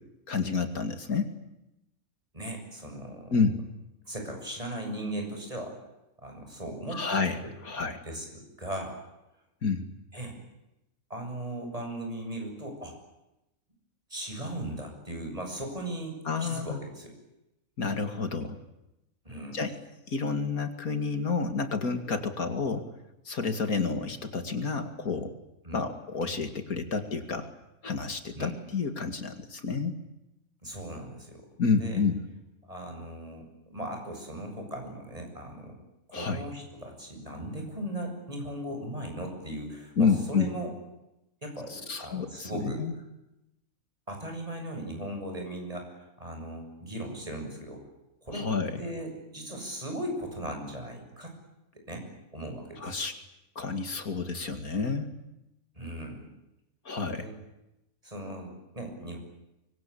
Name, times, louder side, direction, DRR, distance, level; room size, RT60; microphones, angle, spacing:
voice 1, 0.3-1.3 3.3-3.6 6.9-8.0 9.6-9.9 16.3-16.8 17.8-18.6 19.5-19.7 20.1-22.9 23.2-25.3 25.7-27.5 27.8-30.0 31.6-32.2 36.1-36.4 40.0-40.5 41.7-42.9 48.3-48.8 52.8-53.1 53.6-55.1 56.8-57.3, left 5 dB, 70° left, 8 dB, 2.8 m, -29 dB
voice 2, 2.3-3.4 4.0-5.8 6.2-9.0 10.1-10.4 11.1-12.9 14.1-17.2 19.2-19.6 25.6-25.8 28.3-28.6 30.6-32.0 32.6-35.8 36.1-40.7 41.4-42.8 44.1-47.8 48.2-48.5 48.8-51.3 51.7-52.1 52.3-53.0 55.7-56.3 57.1-57.3 58.0-59.2, right 1 dB, 25° right, 3 dB, 7.9 m, -38 dB
25.0 x 24.0 x 8.6 m, 0.91 s
omnidirectional pair, 1.6 m